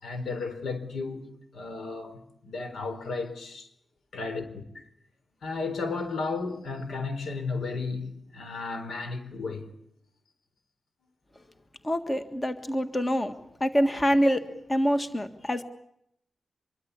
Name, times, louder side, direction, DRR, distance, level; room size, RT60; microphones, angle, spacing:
voice 1, 0.0-3.7 4.1-4.9 5.4-9.7, left 4 dB, 90° left, 4.1 m, -34 dB
voice 2, 11.8-13.3 13.6-14.4 14.7-15.6, equal, 20° left, 1.7 m, -25 dB
25.5 x 23.0 x 8.3 m
wide cardioid pair, 130°, 0 cm